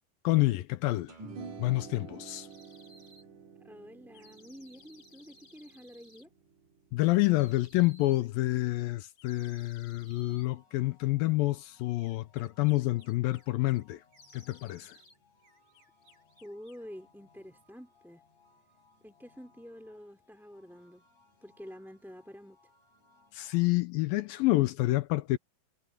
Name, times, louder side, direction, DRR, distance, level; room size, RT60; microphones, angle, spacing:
voice 1, 0.2-1.2 1.6-2.5 6.9-14.0 14.3-15.0 23.3-25.4, left 18 dB, 80° left, 2.2 m, -28 dB
sound 1, 1.1-7.6, right 5 dB, 50° right, 3.6 m, -49 dB
sound 2, 2.5-3.3 4.1-6.3 7.3-8.3 9.2-10.5 12.0-13.8 14.1-15.2 15.4-16.9, left 1 dB, 20° left, 4.8 m, -59 dB
voice 2, 3.6-6.3 16.4-18.2 19.0-21.0 21.4-22.6, equal, ahead, 2.5 m, -48 dB
sound 3, 10.3-23.7, left 3 dB, 40° left, 8.6 m, -66 dB
omnidirectional pair, 4.6 m